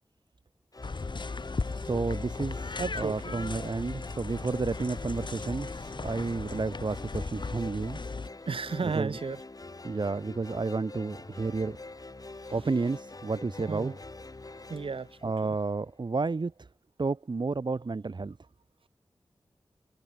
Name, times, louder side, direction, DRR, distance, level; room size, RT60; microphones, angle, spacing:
sound 1, 0.7-16.0, left 2 dB, 45° left, 4.4 m, -45 dB
sound 2, 0.8-8.3, left 4 dB, 60° left, 2.2 m, -37 dB
voice 1, 1.7-8.0 8.8-9.2 9.8-11.8 12.5-13.9 15.2-16.7 17.0-18.4, right 3 dB, 55° right, 1.6 m, -31 dB
voice 2, 2.8-3.5 8.5-9.4 13.7-14.0 14.7-15.6, right 5 dB, 80° right, 6.2 m, -34 dB
cardioid pair, 45°, 9 cm